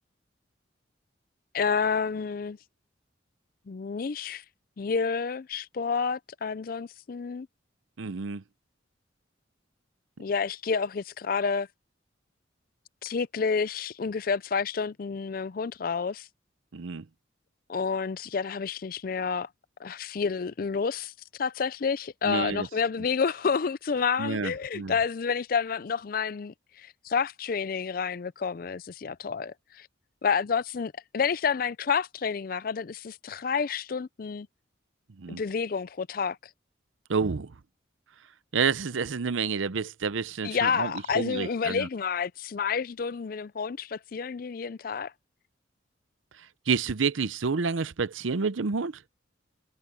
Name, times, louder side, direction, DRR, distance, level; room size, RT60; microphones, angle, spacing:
voice 1, 1.5-2.6 3.7-4.4 4.8-7.5 10.2-11.7 13.0-16.3 17.7-19.5 19.8-21.1 21.4-29.9 30.2-34.5 35.4-36.4 40.4-45.1, left 5 dB, 50° left, 0.4 m, -29 dB
voice 2, 8.0-8.4 16.7-17.0 22.2-22.7 24.2-25.0 35.2-35.4 37.1-37.5 38.5-41.9 46.4-49.0, right 5 dB, 90° right, 0.7 m, -29 dB
head